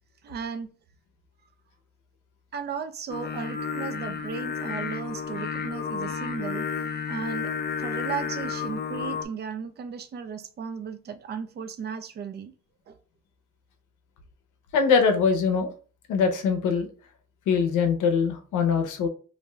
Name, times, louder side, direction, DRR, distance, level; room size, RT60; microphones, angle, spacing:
voice 1, 0.2-0.7 2.5-6.7 7.1-7.5 7.8-12.5 12.9-13.0, right 6 dB, 35° right, 10 dB, 0.4 m, -35 dB
Singing, 3.1-9.3, left 6 dB, 35° left, 0.4 m, -32 dB
voice 2, 14.7-15.7 16.1-16.9 17.5-19.1, left 5 dB, 80° left, 6 dB, 0.6 m, -22 dB
2.6 x 2.2 x 3.0 m, 0.39 s
cardioid pair, 90°, 30 cm